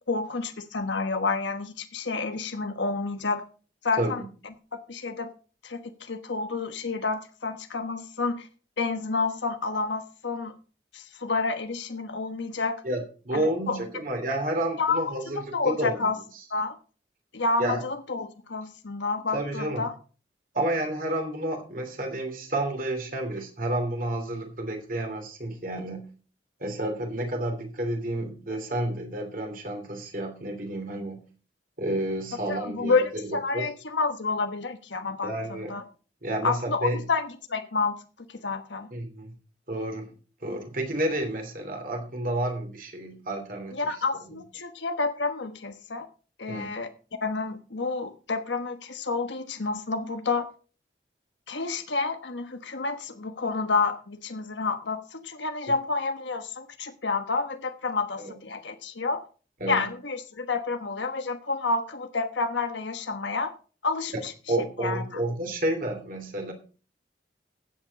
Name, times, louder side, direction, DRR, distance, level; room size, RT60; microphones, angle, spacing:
voice 1, 0.1-3.4 3.8-4.2 4.9-5.3 5.6-8.5 8.8-10.5 10.9-12.8 13.3-13.8 14.8-15.1 15.3-16.2 16.5-16.8 17.3-19.9 32.5-35.3 35.7-35.8 36.4-38.0 38.3-38.9 43.7-46.1 46.4-46.9 47.2-50.5 51.5-59.2 59.7-63.5 63.8-64.3 64.8-65.2, left 4 dB, 80° left, 7 dB, 1.2 m, -29 dB
voice 2, 12.8-16.1 17.6-17.8 19.3-19.8 20.5-26.1 26.6-31.2 31.8-33.7 35.2-35.7 36.2-37.0 38.9-39.3 39.7-40.1 40.4-43.9 44.3-44.4 46.5-46.7 58.2-58.4 59.6-59.9 64.5-66.5, right 1 dB, 50° right, 4 dB, 3.0 m, -30 dB
15.0 x 8.2 x 4.1 m, 0.37 s
head